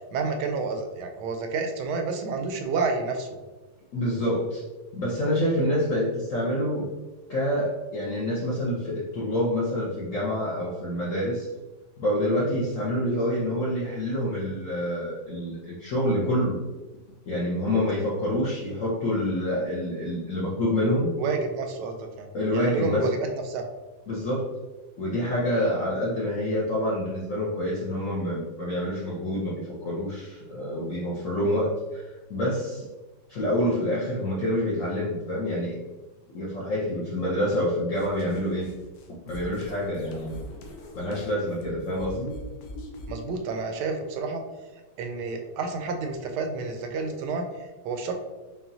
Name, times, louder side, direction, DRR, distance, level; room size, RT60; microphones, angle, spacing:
voice 1, 0.1-3.4 21.2-23.7 43.1-44.4 45.0-48.1, right 4 dB, 75° right, 5 dB, 1.1 m, -30 dB
voice 2, 3.9-4.6 4.9-6.9 7.3-11.5 12.0-16.6 17.3-21.1 22.3-23.1 24.1-24.5 25.0-32.9 33.3-35.8 36.3-38.7 39.3-40.4 41.0-42.3, equal, 65° left, -5 dB, 0.8 m, -27 dB
sound 1, 37.9-43.3, equal, 85° left, 1.4 m, -42 dB
5.6 x 2.3 x 2.6 m, 1.2 s
omnidirectional pair, 2.0 m